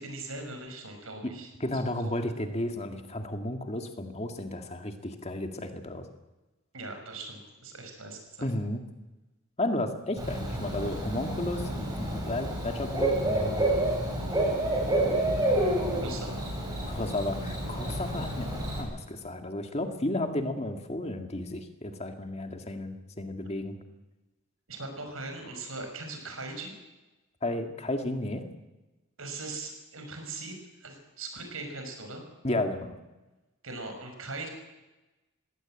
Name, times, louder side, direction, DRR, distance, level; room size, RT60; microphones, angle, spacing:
voice 1, 0.0-1.5 2.0-2.2 6.7-8.5 15.4-15.7 16.0-16.5 24.7-26.7 29.2-32.2 33.6-34.5, right 3 dB, 70° right, 5 dB, 5.5 m, -40 dB
voice 2, 1.6-6.1 8.4-8.8 9.6-13.7 16.9-23.7 27.4-28.4 32.4-33.0, left 1 dB, 30° left, 5 dB, 2.1 m, -33 dB
Bird / Cricket, 10.2-18.8, right 1 dB, 20° right, 6.0 m, -29 dB
20.0 x 17.0 x 9.0 m, 1.1 s
head